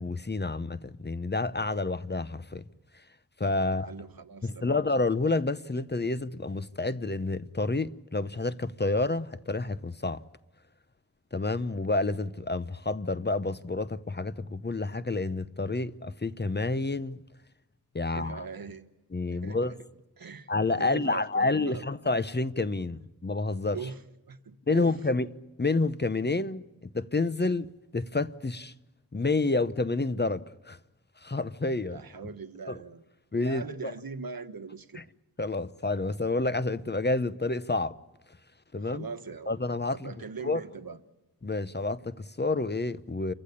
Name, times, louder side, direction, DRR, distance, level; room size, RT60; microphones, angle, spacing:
voice 1, 0.0-2.6 3.4-3.9 4.4-10.2 11.3-17.2 17.9-18.4 19.1-19.7 20.5-23.8 24.7-25.3 25.6-28.7 29.1-30.8 31.2-32.0 32.7-32.8 33.3-33.9 34.9-35.0 35.4-37.9 38.7-39.1 39.5-40.1 40.4-40.6 41.4-43.3, left 3 dB, 30° left, 0.8 m, -29 dB
voice 2, 3.6-4.8 18.0-18.9 19.3-19.8 20.2-20.5 20.8-21.9 23.7-24.0 24.3-24.9 31.9-33.0 33.4-35.0 38.8-39.6 39.9-41.0, right 5 dB, 75° right, 1.3 m, -41 dB
29.0 x 15.5 x 9.9 m
wide cardioid pair, 90°, 36 cm